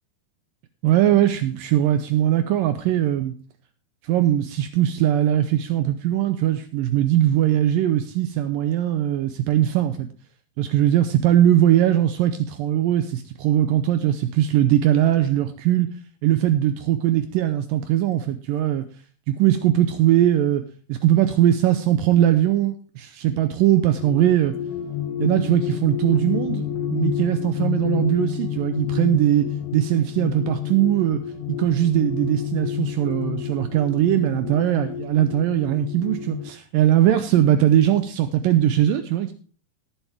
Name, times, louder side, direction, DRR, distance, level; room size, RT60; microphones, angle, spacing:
voice 1, 0.8-3.3 4.1-10.1 10.6-15.9 16.2-18.9 19.3-20.6 20.9-24.5 25.2-29.5 29.7-31.2 31.5-39.3, right 12 dB, 80° right, 10 dB, 2.0 m, -20 dB
sound 1, 23.7-36.5, left 9 dB, 85° left, 3.1 m, -29 dB
18.5 x 7.1 x 3.4 m, 0.39 s
omnidirectional pair, 4.7 m